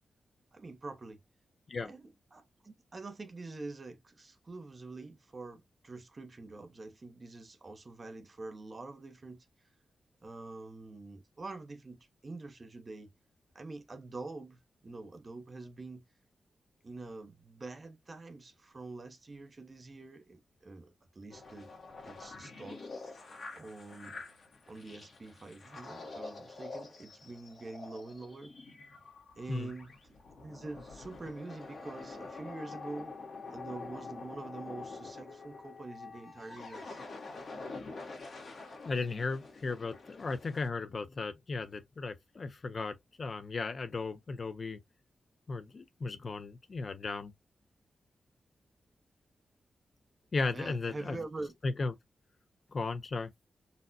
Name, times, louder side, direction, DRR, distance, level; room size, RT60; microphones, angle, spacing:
voice 1, 0.5-1.2 1.9-9.5 10.2-13.1 13.5-16.0 16.8-21.7 22.0-22.8 23.5-24.2 24.7-28.5 29.4-33.2 33.5-37.0 50.5-51.5, right 3 dB, 30° right, 0.6 m, -45 dB
sound 1, 21.3-40.7, left 3 dB, 55° left, 1.0 m, -47 dB
voice 2, 38.9-44.8 45.5-47.3 50.3-51.2 51.6-51.9 52.7-53.3, left 3 dB, 40° left, 0.4 m, -36 dB
4.0 x 2.0 x 2.5 m
wide cardioid pair, 150°, 0 cm